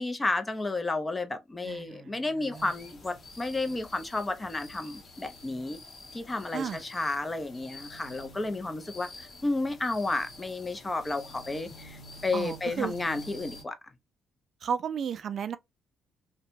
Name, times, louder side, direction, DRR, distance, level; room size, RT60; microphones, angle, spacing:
voice 1, 0.0-5.8 6.1-13.8, left 2 dB, 20° left, 0.6 m, -32 dB
voice 2, 1.6-2.7 6.5-6.8 12.3-12.9 14.6-15.6, right 7 dB, 60° right, 0.3 m, -34 dB
sound 1, 2.5-13.6, left 2 dB, 50° left, 0.9 m, -48 dB
2.7 x 2.2 x 2.5 m
cardioid pair, 85°, 0 cm